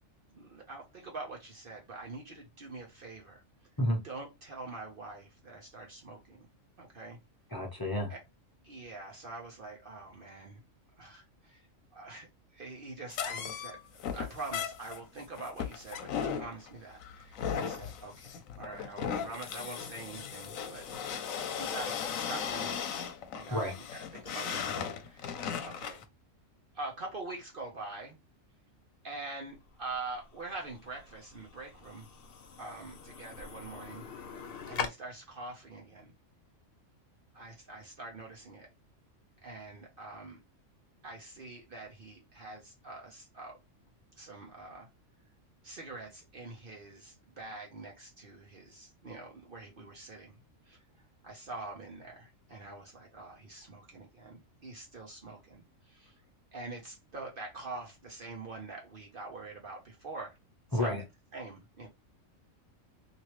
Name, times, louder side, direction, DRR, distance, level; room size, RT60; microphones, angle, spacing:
voice 1, 0.3-3.4 4.0-6.5 6.8-7.2 8.1-8.2 8.6-10.6 11.0-11.7 11.9-20.8 21.6-23.1 23.3-26.0 26.7-28.2 29.0-32.1 32.6-34.0 34.7-36.1 37.3-38.7 39.4-40.4 41.0-43.6 44.2-44.9 45.6-50.4 50.6-50.8 51.2-56.2 56.5-60.4 60.7-61.0 61.3-61.9, right 3 dB, 50° right, 0.9 m, -45 dB
voice 2, 7.5-8.1 23.5-23.7 60.7-61.0, left 1 dB, 20° left, 0.9 m, -30 dB
sound 1, 13.1-26.0, left 7 dB, 85° left, 1.1 m, -37 dB
sound 2, 29.5-34.9, left 6 dB, 55° left, 0.8 m, -43 dB
3.0 x 2.8 x 3.0 m
omnidirectional pair, 1.4 m